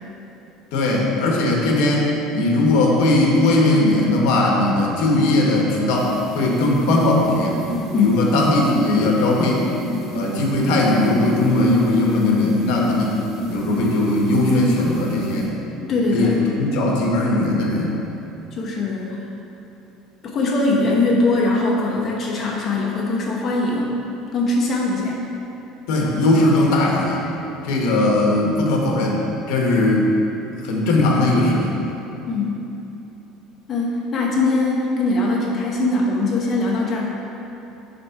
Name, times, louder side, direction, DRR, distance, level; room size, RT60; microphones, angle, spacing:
voice 1, 0.7-2.1 2.3-7.7 8.0-9.6 10.1-13.2 13.5-15.5 16.1-17.9 25.9-27.3 27.6-29.2 29.5-30.1 30.6-31.8, left 2 dB, 75° left, -1 dB, 1.1 m, -18 dB
sound 1, 6.0-15.5, equal, 45° right, 1.2 m, -30 dB
voice 2, 7.9-8.3 15.8-16.4 18.5-19.2 20.2-24.0 24.3-25.2 32.3-32.6 33.7-37.2, left 2 dB, 35° left, -3 dB, 0.8 m, -21 dB
4.5 x 4.0 x 5.7 m, 3.0 s
cardioid pair, 155°, 0 cm